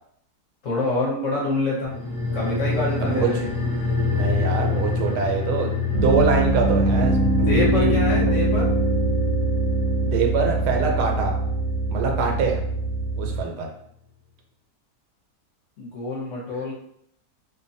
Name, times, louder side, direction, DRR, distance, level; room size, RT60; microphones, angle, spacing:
voice 1, 0.6-1.9 2.3-3.5 7.4-8.6 15.8-16.7, left 2 dB, 60° left, -5 dB, 1.0 m, -26 dB
sound 1, 1.8-12.7 13.0-13.1, left 4 dB, ahead, 0.7 m, -28 dB
voice 2, 3.0-3.3 4.1-7.9 10.0-11.4 11.9-12.6 13.2-13.7, right 5 dB, 90° right, 2 dB, 1.2 m, -24 dB
Piano, 5.9-13.4, right 2 dB, 65° right, 0.9 m, -22 dB
2.7 x 2.2 x 2.6 m, 0.70 s
omnidirectional pair, 1.7 m